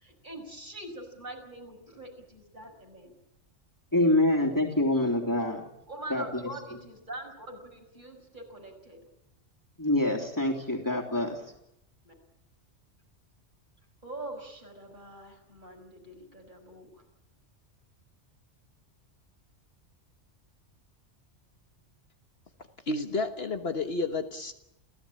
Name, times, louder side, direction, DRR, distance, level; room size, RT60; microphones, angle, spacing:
voice 1, 0.0-3.1 5.9-9.0 12.0-12.1 14.0-16.9, right 2 dB, 40° right, 3 dB, 6.0 m, -43 dB
voice 2, 3.9-5.7 6.1-6.8 9.8-11.4, left 1 dB, 15° left, 2 dB, 3.4 m, -26 dB
voice 3, 22.9-24.5, left 3 dB, 60° left, 6 dB, 1.6 m, -31 dB
29.0 x 16.5 x 8.9 m, 0.84 s
omnidirectional pair, 1.2 m